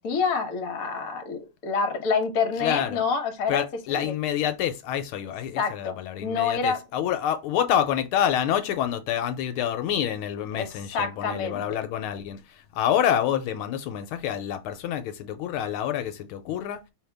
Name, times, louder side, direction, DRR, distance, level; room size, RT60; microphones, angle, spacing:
voice 1, 0.0-3.6 4.0-4.1 5.6-6.0 6.2-6.8 10.5-10.7 10.9-11.8, left 5 dB, 55° left, 1.1 m, -27 dB
voice 2, 2.6-3.0 3.5-16.8, left 10 dB, 80° left, 1.4 m, -27 dB
5.2 x 2.8 x 3.3 m
omnidirectional pair, 2.4 m